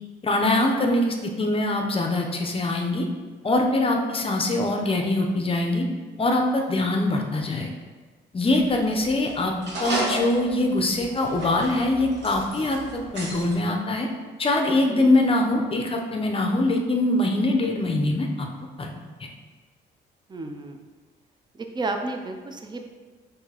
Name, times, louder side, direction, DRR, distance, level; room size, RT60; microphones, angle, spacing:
voice 1, 0.2-3.1 3.4-5.8 6.2-7.7 8.3-9.5 9.8-14.1 14.4-18.5 18.8-18.9, left 2 dB, 30° left, 2 dB, 0.6 m, -23 dB
sound 1, 8.5-13.5, right 1 dB, 60° right, 1.2 m, -34 dB
voice 2, 20.3-20.8 21.5-22.8, right 2 dB, 20° right, 4 dB, 0.5 m, -32 dB
5.7 x 2.6 x 2.9 m, 1.4 s
cardioid pair, 90°, 20 cm